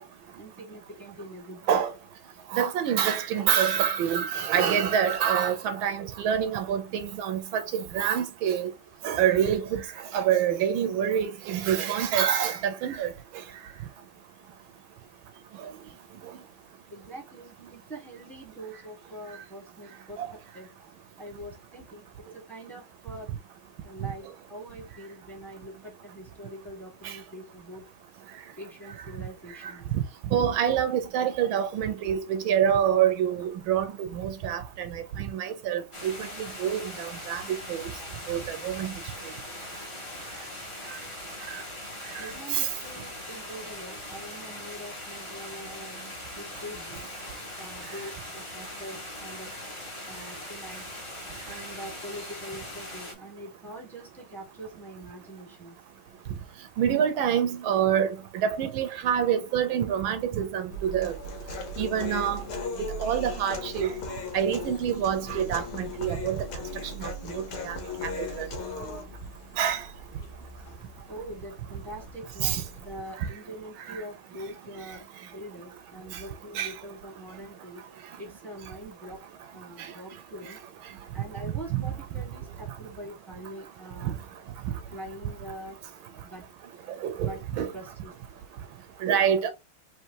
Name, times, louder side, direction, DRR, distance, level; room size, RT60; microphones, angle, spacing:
voice 1, 0.3-1.8 16.9-20.7 21.2-22.0 22.3-23.3 23.8-27.8 28.6-29.8 42.2-46.0 46.3-47.0 47.6-49.5 50.0-50.9 51.4-55.8 71.1-77.8 78.2-79.2 79.5-80.6 81.1-84.2 84.9-85.8 86.2-86.4 87.1-87.4 87.7-88.1, right 1 dB, ahead, 1.3 m, -43 dB
voice 2, 2.5-8.7 9.0-9.8 10.1-13.1 20.2-20.3 27.0-27.1 29.9-30.0 30.3-36.1 36.6-37.9 38.3-38.9 41.5-41.6 42.5-42.7 56.8-61.1 61.8-62.4 63.0-63.9 64.3-66.4 67.0-67.8 68.0-68.1 68.4-68.5 69.6-69.8 72.4-72.6 76.5-76.7 79.8-79.9 81.7-81.8 84.0-84.1 87.0-87.7 89.0-89.5, right 9 dB, 75° right, 1.4 m, -26 dB
sound 1, 35.9-53.1, left 1 dB, 20° left, 1.0 m, -41 dB
sound 2, 60.7-73.0, right 5 dB, 60° left, 1.5 m, -45 dB
Human voice, 61.0-69.0, left 5 dB, 90° left, 1.9 m, -37 dB
4.5 x 3.1 x 2.8 m
omnidirectional pair, 2.3 m